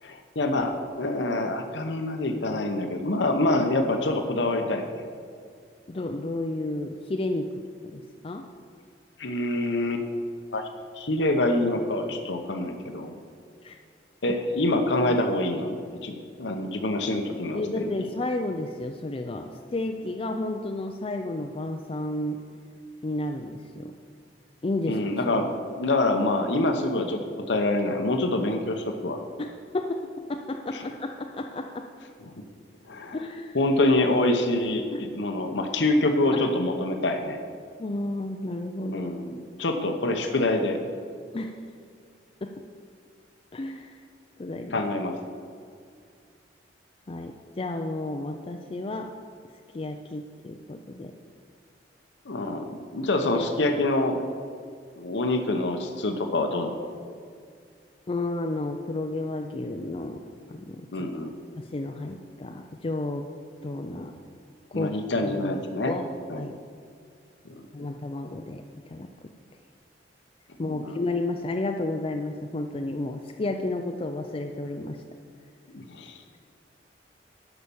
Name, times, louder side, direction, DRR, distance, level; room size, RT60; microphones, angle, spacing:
voice 1, 0.0-4.9 9.2-10.1 10.5-10.6 11.0-13.1 14.2-17.8 24.8-27.2 27.5-29.2 30.7-30.8 32.2-32.4 32.9-33.2 33.5-37.4 38.9-40.8 44.7-45.2 52.2-52.6 52.9-54.2 55.0-56.7 60.9-61.3 64.7-65.9 66.3-66.5 67.4-67.9 70.6-71.0 75.7-76.2, left 2 dB, 85° left, 5 dB, 0.9 m, -26 dB
voice 2, 5.9-7.5 7.9-8.4 13.6-13.8 17.5-22.4 23.0-23.9 24.6-25.0 29.4-31.9 33.1-33.6 34.9-35.0 37.8-39.1 41.3-41.6 42.4-42.5 43.5-44.0 44.4-44.8 47.1-49.1 49.7-51.1 53.3-53.5 58.1-60.2 60.5-61.0 61.6-63.3 63.6-64.1 64.7-65.6 65.9-66.1 66.3-66.5 67.7-69.1 70.6-75.0, left 2 dB, 30° left, 4 dB, 0.4 m, -32 dB
11.0 x 5.9 x 6.9 m, 2.2 s
head